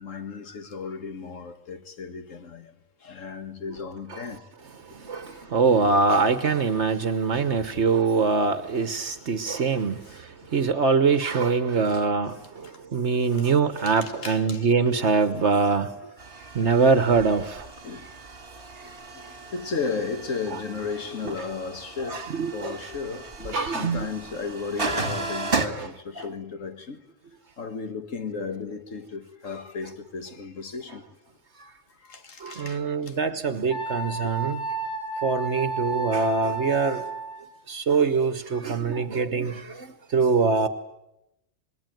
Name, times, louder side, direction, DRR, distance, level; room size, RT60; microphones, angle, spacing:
voice 1, 0.0-4.5 5.2-5.5 8.8-9.4 10.1-10.2 11.9-12.0 12.6-12.8 13.8-14.7 16.3-16.7 17.8-18.2 18.8-27.0 27.6-31.1 31.9-33.4 34.2-34.3, left 5 dB, 85° left, 2.0 m, -35 dB
voice 2, 4.9-15.9 16.5-17.6 22.0-22.8 23.5-24.1 25.7-25.9 26.2-26.3 32.4-34.6 35.2-37.0 37.7-40.7, right 4 dB, 65° right, 1.4 m, -23 dB
sound 1, 16.2-25.7, right 3 dB, 45° right, 2.1 m, -35 dB
Wind instrument woodwind instrument, 33.7-37.5, right 3 dB, 15° left, 6.1 m, -32 dB
27.0 x 21.0 x 9.2 m
omnidirectional pair, 1.3 m